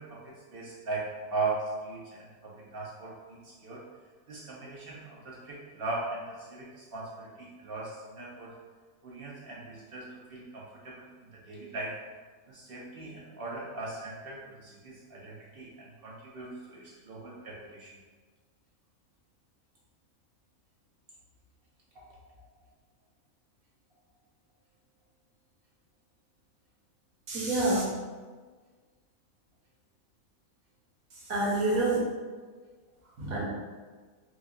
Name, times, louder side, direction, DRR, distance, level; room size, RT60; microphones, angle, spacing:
voice 1, 0.0-3.8 4.3-8.6 9.0-11.9 12.5-18.0 21.9-22.2, right 3 dB, 60° right, -4 dB, 0.6 m, -39 dB
voice 2, 27.3-27.8 31.1-32.0 33.2-33.5, right 2 dB, 80° right, -5 dB, 1.4 m, -27 dB
4.8 x 2.3 x 2.4 m, 1.4 s
omnidirectional pair, 1.5 m